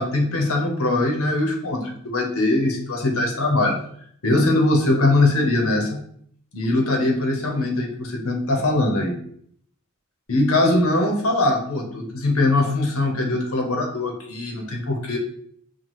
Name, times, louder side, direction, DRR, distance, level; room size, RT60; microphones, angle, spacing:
voice 1, 0.0-3.8 4.2-6.0 6.5-9.2 10.3-15.2, left 2 dB, 70° left, 2 dB, 0.9 m, -21 dB
5.7 x 2.3 x 3.1 m, 0.64 s
head